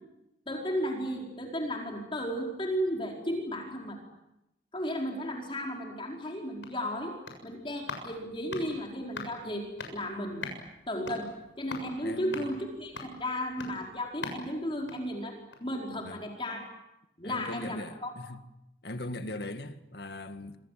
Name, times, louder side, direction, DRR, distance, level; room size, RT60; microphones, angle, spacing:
voice 1, 0.5-4.0 4.7-7.2 7.4-10.5 10.9-16.6 17.2-18.1, equal, 30° left, 4.7 m, -34 dB
sound 1, 6.5-15.8 16.1-16.2, left 3 dB, 85° left, 7.2 m, -44 dB
voice 2, 12.0-12.5 15.9-16.2 17.2-18.4 18.8-20.6, left 1 dB, 60° left, 1.9 m, -40 dB
27.0 x 27.0 x 7.6 m
head